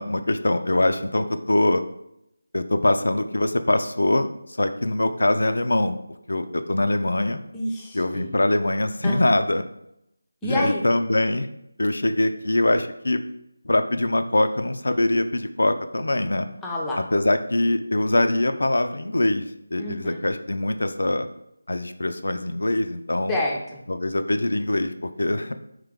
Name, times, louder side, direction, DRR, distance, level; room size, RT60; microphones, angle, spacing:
voice 1, 0.0-1.8 2.5-4.3 4.6-6.0 6.3-7.4 7.9-9.6 10.4-11.5 11.8-13.2 13.7-16.5 17.1-21.3 21.7-23.4 23.9-25.5, left 1 dB, 75° left, 8 dB, 0.3 m, -23 dB
voice 2, 7.5-8.3 9.0-9.2 10.4-10.8 16.6-17.0 19.8-20.2 23.3-23.8, left 1 dB, 5° left, -3 dB, 0.5 m, -28 dB
3.6 x 2.9 x 3.4 m, 0.81 s
figure-of-eight pair, 165°, 0 cm